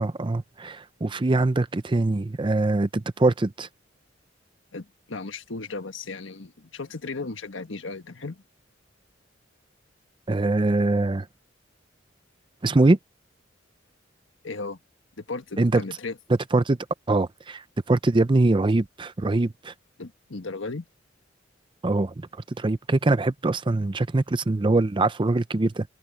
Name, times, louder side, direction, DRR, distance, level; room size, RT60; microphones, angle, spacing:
voice 1, 0.0-3.7 10.3-11.3 12.6-13.0 15.6-15.8 16.5-16.8 17.1-17.6 17.9-19.7 21.8-22.1 22.6-25.8, right 2 dB, 25° right, 0.5 m, -23 dB
voice 2, 4.7-8.4 14.4-14.8 15.2-16.2 20.0-20.8, left 3 dB, 85° left, 1.5 m, -35 dB
open air
head